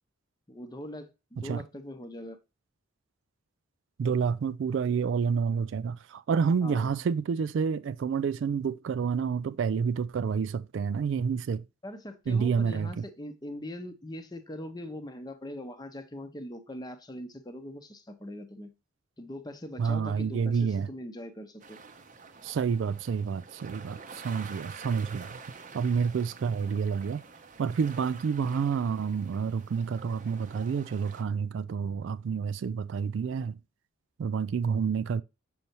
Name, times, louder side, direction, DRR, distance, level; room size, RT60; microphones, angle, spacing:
voice 1, 0.5-2.4 6.6-6.9 11.8-18.7 19.2-21.8, left 1 dB, 20° left, 0.7 m, -41 dB
voice 2, 4.0-11.6 12.3-13.0 19.8-20.9 22.4-25.4 25.7-27.2 27.6-33.6 34.2-35.2, right 6 dB, 65° right, 0.3 m, -29 dB
sound 1, 21.6-31.2, right 4 dB, 40° right, 0.6 m, -48 dB
6.7 x 5.4 x 2.9 m
head